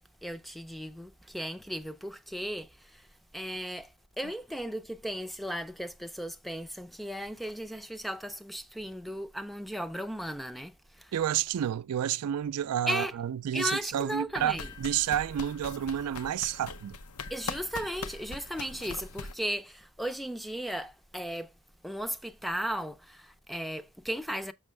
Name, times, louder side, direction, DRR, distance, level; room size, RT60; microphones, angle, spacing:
voice 1, 0.2-3.0 3.3-3.9 4.2-11.1 12.9-13.1 13.5-14.7 17.3-21.5 21.8-24.5, equal, ahead, 0.4 m, -36 dB
voice 2, 11.1-17.0, right 10 dB, 85° right, 0.3 m, -30 dB
Fence Trill, 14.4-19.3, left 4 dB, 85° left, 0.8 m, -41 dB
6.2 x 6.0 x 3.3 m
head